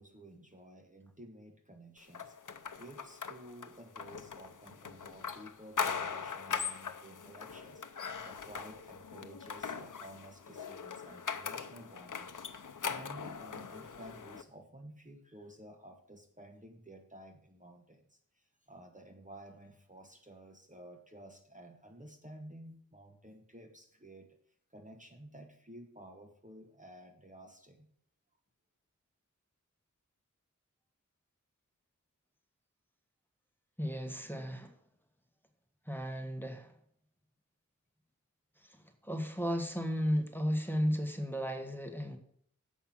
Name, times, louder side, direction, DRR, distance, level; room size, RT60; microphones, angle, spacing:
voice 1, 0.0-2.4 2.8-12.3 12.7-24.4 24.7-27.9, right 1 dB, 25° right, 3 dB, 1.2 m, -53 dB
sound 1, 2.1-14.4, left 6 dB, 75° left, 0.7 m, -40 dB
voice 2, 33.8-34.8 35.9-36.7 38.6-42.2, equal, 5° left, 5 dB, 1.4 m, -34 dB
7.4 x 5.6 x 7.5 m, 0.65 s
wide cardioid pair, 55°, 31 cm